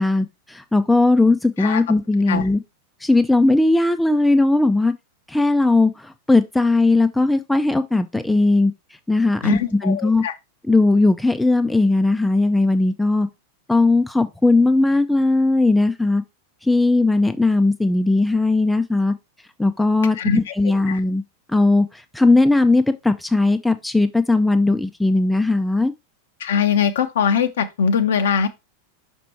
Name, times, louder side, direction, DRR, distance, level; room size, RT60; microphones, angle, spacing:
voice 1, 0.0-2.6 3.0-4.9 5.3-8.7 9.1-10.2 10.7-13.3 13.7-16.2 16.6-19.1 19.6-21.2 21.5-21.9 22.1-25.9, left 2 dB, 5° left, 0.5 m, -18 dB
voice 2, 9.4-10.3 20.2-20.5 20.9-21.0 26.4-28.5, left 7 dB, 60° left, 0.8 m, -21 dB
5.9 x 4.5 x 4.5 m
figure-of-eight pair, 90°, 0 cm